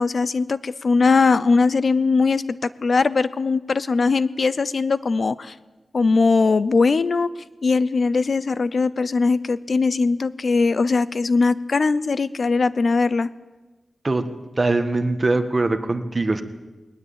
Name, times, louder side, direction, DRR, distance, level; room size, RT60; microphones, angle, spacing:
voice 1, 0.0-5.6 5.9-7.3 7.6-13.3, left 4 dB, 55° left, 17 dB, 0.6 m, -20 dB
voice 2, 14.6-16.4, right 2 dB, 30° right, 9 dB, 1.6 m, -22 dB
20.5 x 19.0 x 8.7 m, 1.2 s
wide cardioid pair, 115°, 0 cm